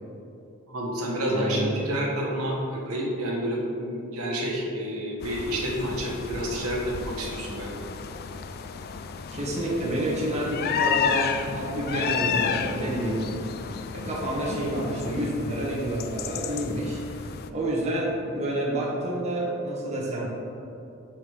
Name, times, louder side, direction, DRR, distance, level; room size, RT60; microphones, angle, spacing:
voice 1, 0.7-7.9, equal, 80° right, -3 dB, 1.2 m, -29 dB
voice 2, 1.3-1.6 9.3-13.2 13.9-20.3, right 1 dB, 30° right, -5 dB, 1.1 m, -29 dB
sound 1, 5.2-17.5, left 6 dB, 45° left, 0.3 m, -32 dB
6.2 x 4.2 x 4.6 m, 2.8 s
head